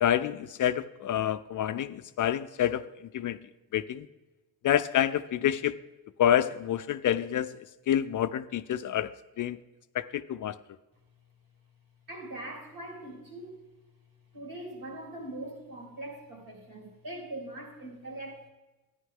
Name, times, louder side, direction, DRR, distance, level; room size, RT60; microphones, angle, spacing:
voice 1, 0.0-3.4 3.7-4.1 4.6-5.8 6.2-7.6 7.9-9.1 9.4-9.6 9.9-10.6, left 10 dB, 50° left, 13 dB, 0.4 m, -28 dB
voice 2, 12.1-13.7 14.3-18.5, right 1 dB, 55° right, 0 dB, 3.5 m, -42 dB
11.5 x 9.9 x 3.7 m, 1.1 s
cardioid pair, 85°, 40 cm